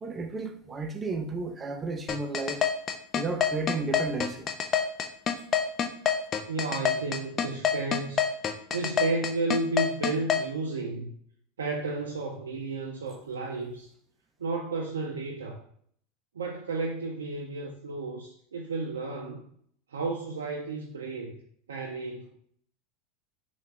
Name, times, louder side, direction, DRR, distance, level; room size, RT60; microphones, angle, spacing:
voice 1, 0.0-2.7 3.1-4.5, right 3 dB, 25° right, 0.5 m, -33 dB
sound 1, 2.1-10.4, left 8 dB, 35° left, 0.4 m, -26 dB
voice 2, 6.5-8.3 8.7-11.1 11.6-13.9 14.4-15.6 16.3-19.4 19.9-21.4 21.7-22.3, right 3 dB, 85° right, 0.4 m, -32 dB
3.4 x 2.3 x 3.3 m
hypercardioid pair, 90°, 0 cm